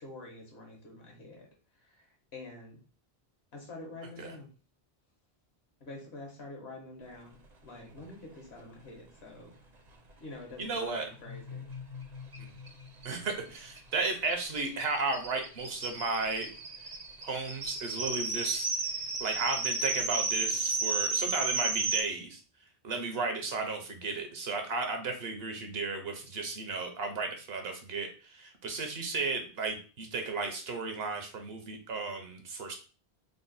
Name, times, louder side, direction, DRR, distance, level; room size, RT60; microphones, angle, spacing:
voice 1, 0.0-1.5 1.8-2.8 3.5-4.5 5.8-7.4 7.6-9.5 10.2-11.6, left 2 dB, 75° left, 0 dB, 1.5 m, -47 dB
voice 2, 10.6-11.1 12.4-12.5 13.0-16.5 17.2-18.7 19.2-22.4 22.8-32.7, right 3 dB, 70° right, 4 dB, 1.0 m, -34 dB
sound 1, 11.1-13.9, left 6 dB, 60° left, 1.0 m, -46 dB
sound 2, 12.3-12.4 12.7-12.8 13.0-22.0, right 4 dB, 45° right, 0.7 m, -33 dB
3.8 x 2.1 x 3.9 m, 0.37 s
omnidirectional pair, 1.1 m